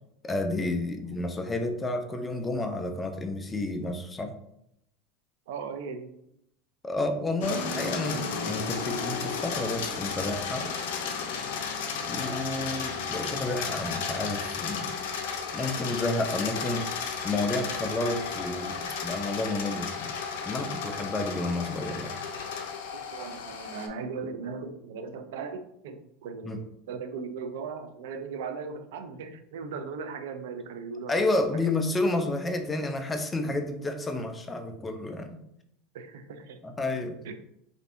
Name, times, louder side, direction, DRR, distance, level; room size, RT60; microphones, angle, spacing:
voice 1, 0.2-4.3 6.8-10.8 12.1-14.9 15.5-16.8 17.2-20.2 20.4-22.2 26.4-26.6 31.1-35.4 36.6-37.2, left 2 dB, 15° left, 6 dB, 0.3 m, -30 dB
voice 2, 5.5-6.2 22.9-31.1 31.5-31.7 35.9-36.6 37.2-37.4, right 5 dB, 85° right, 8 dB, 0.4 m, -38 dB
sound 1, 7.4-23.9, left 6 dB, 85° left, 0.5 m, -33 dB
3.3 x 2.6 x 2.5 m, 0.77 s
supercardioid pair, 155°, 0 cm